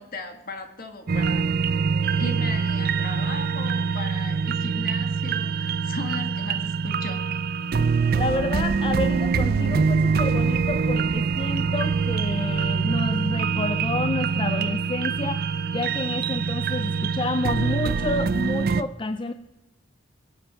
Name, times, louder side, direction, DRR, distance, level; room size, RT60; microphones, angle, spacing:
voice 1, 0.0-1.5 2.0-7.2, left 2 dB, 45° left, 6 dB, 1.8 m, -37 dB
sound 1, 1.1-18.8, right 5 dB, 45° right, 0.4 m, -24 dB
voice 2, 8.2-19.3, left 2 dB, 25° left, 10 dB, 0.4 m, -29 dB
22.5 x 7.7 x 5.7 m, 1.0 s
head